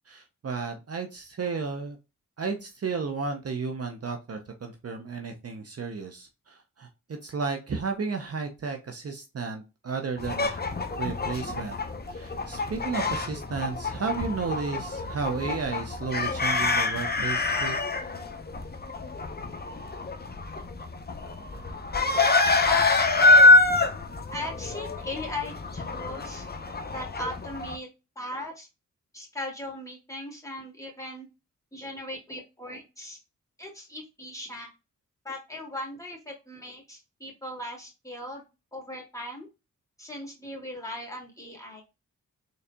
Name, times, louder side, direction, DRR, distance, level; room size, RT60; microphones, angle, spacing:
voice 1, 0.1-2.0 2.4-10.6 11.0-11.8 12.1-17.8, right 4 dB, 45° right, 4 dB, 0.7 m, -33 dB
sound 1, 10.2-27.8, left 3 dB, 30° left, 0.8 m, -25 dB
voice 2, 22.6-23.6 24.3-26.5 26.9-27.9 28.2-28.7 29.1-31.3 31.7-33.2 33.6-34.7 35.2-38.4 38.7-39.5 40.0-41.8, left 1 dB, 10° left, -2 dB, 2.4 m, -38 dB
3.9 x 3.9 x 2.3 m, 0.27 s
cardioid pair, 50°, 33 cm